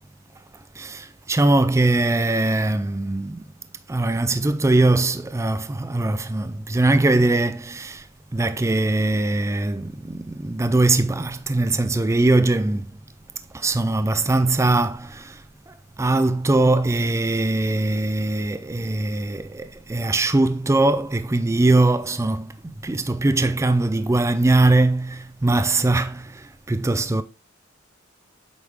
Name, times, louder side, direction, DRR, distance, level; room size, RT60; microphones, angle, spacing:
voice 1, 0.5-3.5 3.9-8.1 8.3-13.0 13.5-27.2, right 2 dB, 15° right, 0.4 m, -21 dB
7.9 x 4.8 x 3.6 m
head